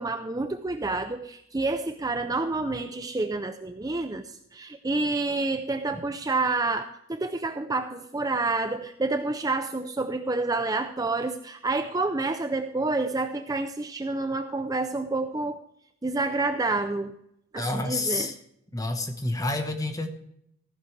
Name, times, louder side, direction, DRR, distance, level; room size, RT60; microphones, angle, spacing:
voice 1, 0.0-15.6 16.0-17.1 17.5-18.3, right 3 dB, 15° right, 8 dB, 0.4 m, -28 dB
voice 2, 17.6-18.4 18.7-20.1, left 2 dB, 15° left, 7 dB, 1.1 m, -29 dB
15.0 x 11.0 x 3.2 m, 0.75 s
head